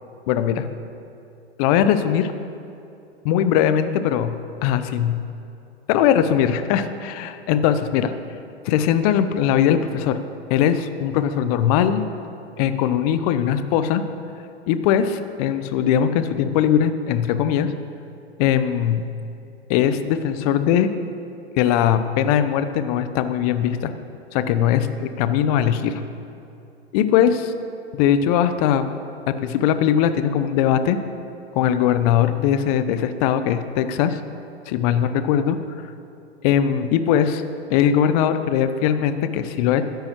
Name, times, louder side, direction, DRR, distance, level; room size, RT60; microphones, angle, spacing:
voice 1, 0.3-0.7 1.6-2.3 3.2-4.4 4.6-5.2 5.9-8.1 8.6-10.2 10.5-12.0 12.6-14.0 14.7-17.7 18.4-19.1 19.7-20.9 21.6-23.9 24.3-26.0 26.9-27.3 27.9-28.9 29.3-31.0 31.5-34.2 34.7-35.6 36.4-37.4 37.7-39.8, left 9 dB, 35° left, 11 dB, 0.8 m, -20 dB
22.0 x 10.5 x 3.0 m, 2.7 s
figure-of-eight pair, 110°, 32 cm